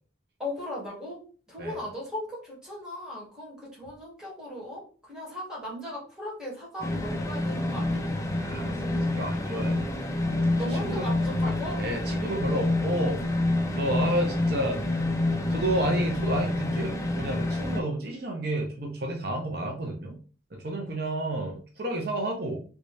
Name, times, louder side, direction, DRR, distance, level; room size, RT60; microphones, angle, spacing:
voice 1, 0.4-1.2 1.5-8.0 10.6-11.8, left 1 dB, 5° right, -6 dB, 1.6 m, -37 dB
sound 1, 6.8-17.8, left 2 dB, 15° left, 0.5 m, -28 dB
voice 2, 8.4-9.9 10.6-11.1 11.8-13.2 13.7-14.8 15.5-20.2 20.5-22.6, right 1 dB, 60° right, 1 dB, 0.7 m, -31 dB
3.3 x 2.7 x 3.2 m, 0.39 s
head